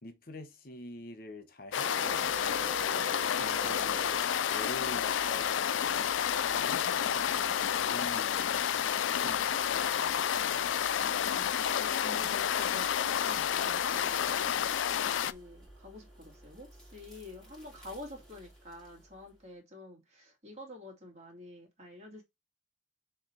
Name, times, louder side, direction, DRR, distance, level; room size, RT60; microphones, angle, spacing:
voice 1, 0.0-4.1 4.5-8.7 9.0-10.0, left 1 dB, 50° left, 1.0 m, -46 dB
sound 1, 1.7-15.3, left 9 dB, 80° left, 0.4 m, -30 dB
sound 2, 1.7-19.5, equal, 5° left, 2.3 m, -56 dB
Printer, 1.7-6.8, right 5 dB, 75° right, 1.0 m, -45 dB
voice 2, 10.9-22.2, left 1 dB, 35° right, 2.2 m, -48 dB
6.3 x 3.4 x 4.4 m
head